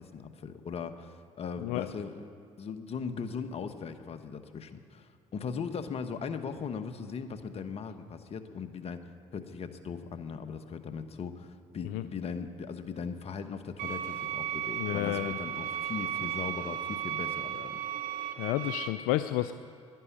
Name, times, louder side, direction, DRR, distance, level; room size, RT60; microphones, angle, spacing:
voice 1, 0.0-2.3 2.6-9.0 9.3-17.8, left 6 dB, 45° left, 8 dB, 1.1 m, -39 dB
sound 1, 13.8-18.9, right 10 dB, 65° right, 1.1 m, -35 dB
voice 2, 14.8-15.3 18.4-19.5, left 15 dB, 75° left, 11 dB, 0.4 m, -31 dB
11.5 x 11.0 x 8.5 m, 2.5 s
supercardioid pair, 65°, 14 cm